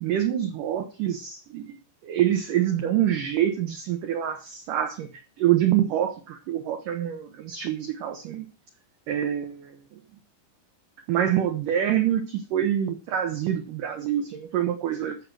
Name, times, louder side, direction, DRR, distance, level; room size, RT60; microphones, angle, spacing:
voice 1, 0.0-1.8 2.0-5.1 5.4-8.5 9.1-10.0 11.1-15.3, right 11 dB, 80° right, 6 dB, 1.9 m, -26 dB
14.0 x 6.6 x 4.7 m, 0.35 s
omnidirectional pair, 5.2 m